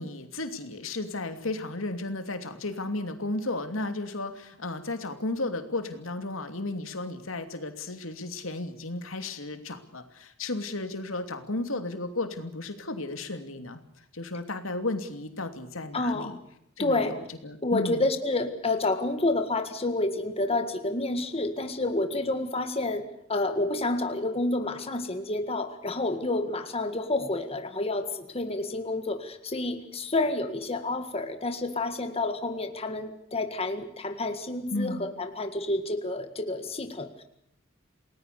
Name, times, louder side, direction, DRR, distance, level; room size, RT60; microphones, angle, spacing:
voice 1, 0.0-13.8 14.1-16.4 16.8-17.2 17.4-18.0 34.7-35.0, left 2 dB, 80° left, 7 dB, 2.9 m, -34 dB
voice 2, 15.9-16.3 16.8-17.2 17.6-37.2, left 2 dB, 30° left, 7 dB, 1.8 m, -29 dB
29.0 x 19.5 x 7.0 m, 0.74 s
head